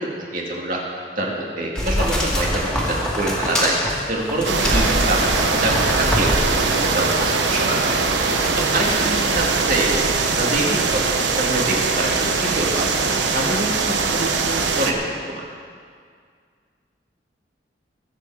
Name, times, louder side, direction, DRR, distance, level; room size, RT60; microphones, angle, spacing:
voice 1, 0.3-0.8 1.2-3.7 4.1-5.7 6.0-6.3 6.8-7.9 8.7-10.0 10.4-15.4, right 2 dB, 45° right, -2 dB, 2.4 m, -25 dB
sound 1, 1.8-7.6 8.1-8.6 9.0-9.1, equal, 5° left, 2.4 m, -24 dB
sound 2, 4.4-14.9, right 4 dB, 85° right, 1.1 m, -21 dB
voice 2, 9.0-9.7 10.7-10.8, equal, 20° right, -1 dB, 1.7 m, -35 dB
22.0 x 7.8 x 5.0 m, 2.1 s
head